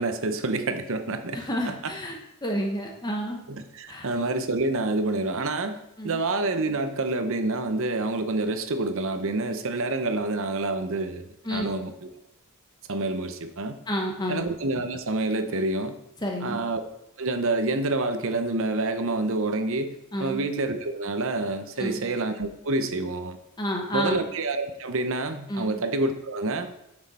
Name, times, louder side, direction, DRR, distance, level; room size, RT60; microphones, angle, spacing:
voice 1, 0.0-1.7 3.5-12.1 12.9-13.8 14.3-16.0 16.4-16.8 17.2-23.4 23.9-26.7, right 2 dB, 60° right, 8 dB, 0.8 m, -28 dB
voice 2, 1.3-3.4 3.9-4.1 6.0-6.2 11.4-11.7 13.9-14.5 16.2-16.6 20.1-20.4 21.8-22.0 23.6-24.2 25.5-25.7, equal, 20° left, 0 dB, 1.3 m, -30 dB
9.6 x 6.3 x 4.2 m, 0.83 s
head